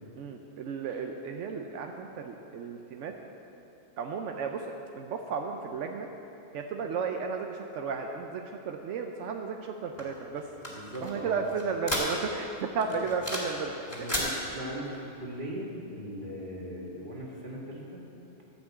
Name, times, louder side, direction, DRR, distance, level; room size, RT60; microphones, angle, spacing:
voice 1, 0.2-3.1 4.0-6.1 6.5-10.5 11.0-13.8, right 5 dB, 85° right, 3 dB, 1.0 m, -34 dB
sound 1, 10.0-12.5 12.8-13.6 13.8-14.3, left 1 dB, 20° left, 2.2 m, -34 dB
voice 2, 10.6-11.4 12.9-13.1 13.9-18.0, equal, 45° right, -4 dB, 2.2 m, -39 dB
13.0 x 5.8 x 7.9 m, 2.9 s
omnidirectional pair, 1.2 m